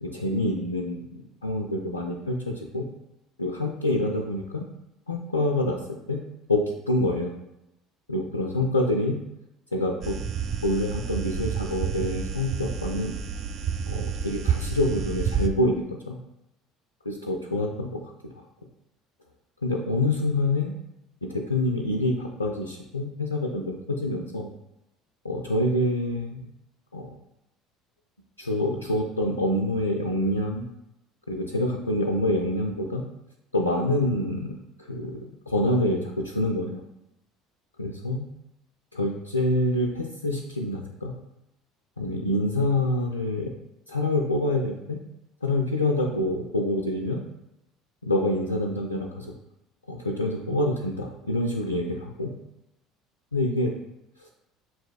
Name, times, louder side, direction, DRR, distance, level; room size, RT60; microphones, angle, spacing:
voice 1, 0.0-2.9 3.4-4.7 5.1-5.8 6.1-6.2 6.5-6.6 6.9-7.3 8.1-9.2 9.7-10.2 10.6-13.1 13.9-16.2 17.1-18.3 19.6-20.8 21.2-24.5 25.2-26.5 26.9-27.2 28.4-30.6 31.3-33.0 33.5-36.8 37.8-38.3 38.9-41.1 42.0-43.5 43.9-45.0 45.4-47.2 48.0-49.3 49.9-52.4 53.3-53.7 54.2-54.3, left 1 dB, 90° left, -1 dB, 0.3 m, -26 dB
sound 1, 10.0-15.5, right 6 dB, 40° right, 0.3 m, -29 dB
5.7 x 2.7 x 2.3 m, 0.88 s
figure-of-eight pair, 60°, 0 cm